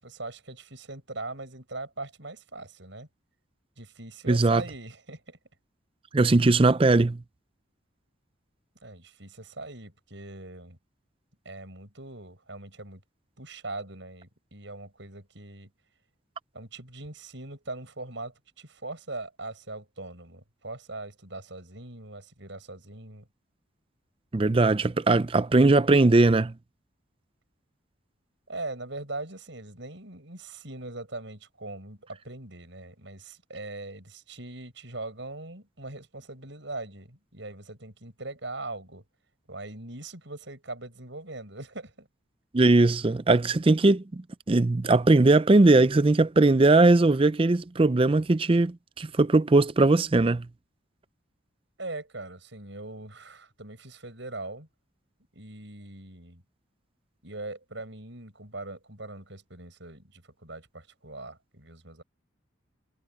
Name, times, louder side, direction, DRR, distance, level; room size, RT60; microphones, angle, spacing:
voice 1, 0.0-3.1 3.8-5.4 8.8-10.8 11.5-13.0 13.4-15.7 16.5-23.3 28.5-39.0 39.5-42.1 51.8-54.7 55.3-56.4 57.2-62.0, right 2 dB, 65° right, 6.9 m, -41 dB
voice 2, 4.3-4.6 6.1-7.2 24.3-26.5 42.5-50.5, right 2 dB, 25° right, 0.5 m, -20 dB
head